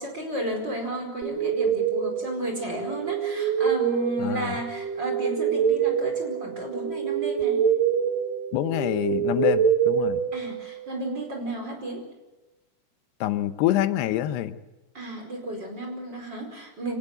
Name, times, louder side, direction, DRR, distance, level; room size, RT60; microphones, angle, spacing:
voice 1, 0.0-7.6 10.3-12.0 14.9-17.0, right 1 dB, 25° right, 3 dB, 5.2 m, -33 dB
sound 1, 1.2-10.9, right 8 dB, 75° right, 3.0 m, -26 dB
voice 2, 4.2-4.6 8.5-10.2 13.2-14.6, left 12 dB, 90° left, 12 dB, 3.0 m, -26 dB
25.0 x 18.5 x 7.9 m, 1.1 s
omnidirectional pair, 4.6 m